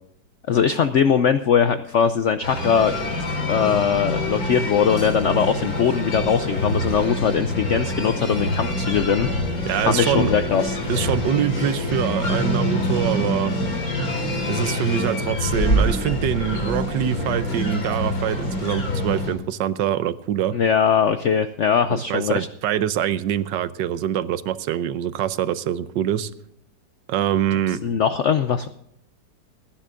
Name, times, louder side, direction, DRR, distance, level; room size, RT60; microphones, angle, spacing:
voice 1, 0.5-2.9 3.5-9.3 9.8-10.8 20.5-22.5 27.8-28.7, left 7 dB, 75° left, 10 dB, 0.6 m, -20 dB
sound 1, 2.4-19.3, left 1 dB, 55° left, 3.2 m, -25 dB
voice 2, 9.7-10.3 10.9-13.5 14.5-20.5 21.9-26.3 27.1-27.8, right 10 dB, 85° right, 14 dB, 1.3 m, -24 dB
29.0 x 10.0 x 2.5 m, 0.76 s
omnidirectional pair, 1.9 m